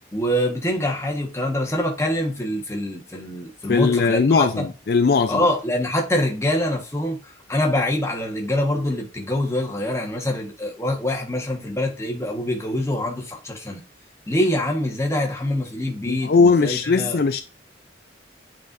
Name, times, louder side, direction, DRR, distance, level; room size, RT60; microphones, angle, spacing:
voice 1, 0.1-4.7 5.3-13.8 14.3-17.2, left 1 dB, 15° left, 1.3 m, -25 dB
voice 2, 3.7-5.4 16.1-17.4, left 4 dB, 50° left, 0.4 m, -19 dB
8.5 x 4.3 x 2.6 m
head